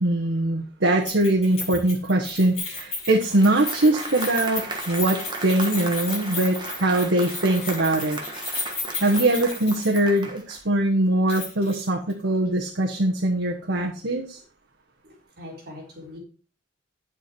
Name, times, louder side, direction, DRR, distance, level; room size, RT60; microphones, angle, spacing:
voice 1, 0.0-8.2 9.0-14.4, right 1 dB, 65° right, 1 dB, 1.3 m, -22 dB
Keys jangling, 1.0-10.2 10.5-10.6 11.3-11.8 12.1-12.2, left 3 dB, 30° left, 5.8 m, -34 dB
Applause, 2.8-10.7, right 2 dB, 20° right, 1.5 m, -36 dB
voice 2, 15.0-16.2, left 1 dB, 50° right, -2 dB, 4.0 m, -42 dB
9.5 x 8.1 x 4.5 m, 0.40 s
head